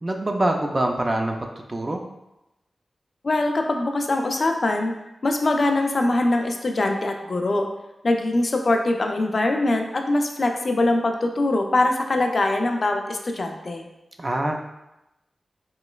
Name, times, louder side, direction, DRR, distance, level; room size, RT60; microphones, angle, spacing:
voice 1, 0.0-1.4 1.7-2.0 14.2-14.6, right 1 dB, 30° right, 2 dB, 0.3 m, -24 dB
voice 2, 3.2-4.9 5.2-7.7 8.0-13.9, left 2 dB, 50° left, 3 dB, 0.3 m, -22 dB
3.0 x 3.0 x 2.2 m, 0.92 s
wide cardioid pair, 105°, 0 cm